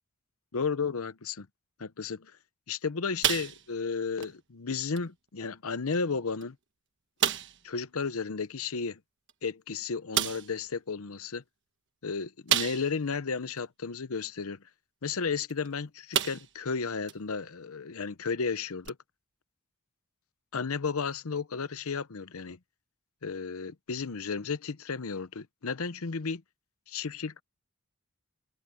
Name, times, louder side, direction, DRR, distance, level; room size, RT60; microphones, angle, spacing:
voice 1, 0.5-1.5 1.8-2.3 2.7-6.6 7.6-9.0 9.4-11.4 12.0-14.6 15.0-19.0 20.5-22.6 23.2-26.4 26.9-27.4, left 5 dB, 75° left, 0.8 m, -33 dB
sound 1, 3.2-3.9 4.2-4.4 5.0-5.1 5.9-6.0 6.4-6.5 7.2-7.6 9.3-9.4 10.1-10.5 12.5-13.1 13.6-13.7 15.5-15.7 16.1-16.6 17.1-17.2 18.8-18.9, right 10 dB, 55° right, 1.3 m, -29 dB
head